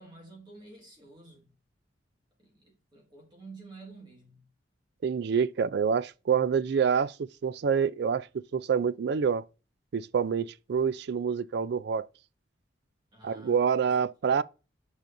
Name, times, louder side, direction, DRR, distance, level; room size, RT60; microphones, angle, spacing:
voice 1, 0.0-1.5 2.4-4.5 13.1-13.9 14.2-14.3, right 3 dB, 25° right, 1.9 m, -50 dB
voice 2, 5.0-8.3 8.5-9.4 9.9-12.1 13.2-14.4, right 6 dB, 60° right, 0.4 m, -27 dB
9.1 x 5.0 x 2.6 m
head